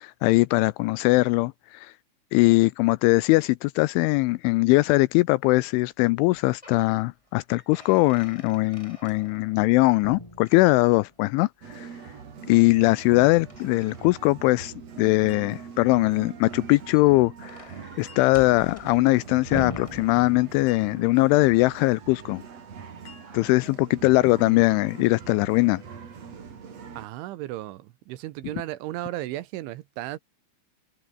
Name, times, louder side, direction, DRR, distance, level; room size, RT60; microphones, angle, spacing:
voice 1, 0.0-1.9 2.3-11.9 12.5-17.7 18.0-22.4 23.3-25.8, left 22 dB, 85° left, 2.8 m, -21 dB
sound 1, 6.2-6.9 7.3-9.7 10.0-11.2 13.0-14.7 16.7-20.8, left 1 dB, 5° left, 4.5 m, -42 dB
sound 2, 11.6-27.1, right 6 dB, 40° right, 3.3 m, -43 dB
sound 3, 15.3-16.2 18.1-18.8 20.7-21.4 23.0-23.8, left 6 dB, 50° left, 6.0 m, -54 dB
voice 2, 27.0-30.2, right 15 dB, 75° right, 3.3 m, -35 dB
omnidirectional pair, 5.8 m